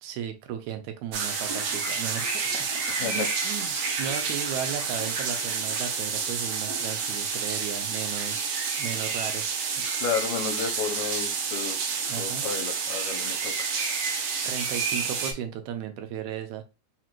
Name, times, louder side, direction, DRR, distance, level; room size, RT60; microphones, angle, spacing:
voice 1, 0.0-2.7 2.9-9.5 9.8-9.9 12.1-12.5 14.4-16.6, right 9 dB, 90° right, 6 dB, 2.0 m, -35 dB
sound 1, 1.1-15.3, right 5 dB, 70° right, 1.5 m, -29 dB
voice 2, 10.0-11.8 12.2-13.7, left 6 dB, 80° left, 5 dB, 2.1 m, -32 dB
4.9 x 3.0 x 2.4 m, 0.28 s
omnidirectional pair, 3.3 m